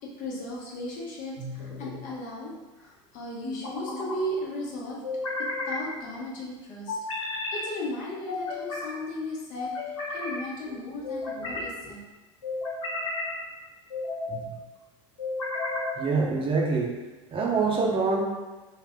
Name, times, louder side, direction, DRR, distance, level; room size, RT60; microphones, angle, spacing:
voice 1, 0.0-5.0 5.4-7.0 7.5-12.0, left 1 dB, 55° left, -3 dB, 1.1 m, -36 dB
sound 1, 1.4-2.0 3.4-4.2 5.0-5.8 6.9-7.6 8.3-8.9 9.5-10.4 11.0-11.7 12.4-13.3 13.9-14.4 15.2-16.0, left 3 dB, 90° left, 1.2 m, -33 dB
voice 2, 16.0-16.9 17.3-18.3, right 4 dB, 35° right, 0 dB, 0.7 m, -25 dB
3.3 x 2.4 x 3.6 m, 1.2 s
hypercardioid pair, 80°, 16 cm